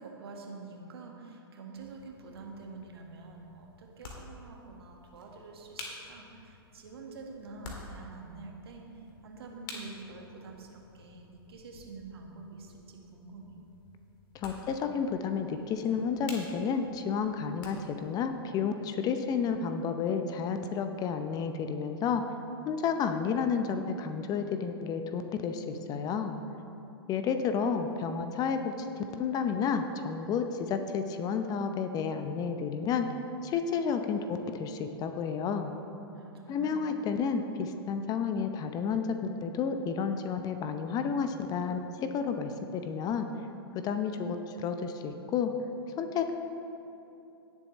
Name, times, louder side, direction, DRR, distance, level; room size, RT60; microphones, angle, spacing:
voice 1, 0.0-8.9 9.2-13.5 36.1-36.8, right 4 dB, 70° right, 1 dB, 1.6 m, -47 dB
sound 1, 1.7-18.1, left 3 dB, 55° left, 2.0 m, -50 dB
voice 2, 14.3-22.3 22.6-26.4 27.1-33.1 33.4-35.7 36.5-43.3 43.7-45.5 46.0-46.3, left 6 dB, 30° left, 7 dB, 0.7 m, -31 dB
17.5 x 7.3 x 3.2 m, 2.8 s
hypercardioid pair, 110°, 13 cm